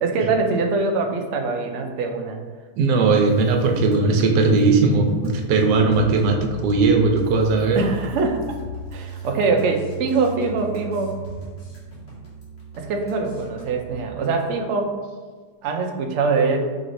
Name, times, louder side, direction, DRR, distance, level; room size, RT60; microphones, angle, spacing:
voice 1, 0.0-2.4 7.7-8.6 8.9-11.1 12.8-15.0 15.6-16.6, right 4 dB, 75° right, 3 dB, 0.6 m, -23 dB
voice 2, 2.8-7.8, right 3 dB, 90° right, 3 dB, 1.2 m, -18 dB
sound 1, 3.2-13.9, equal, 35° left, 1.2 m, -36 dB
5.0 x 3.1 x 2.6 m, 1.5 s
omnidirectional pair, 1.8 m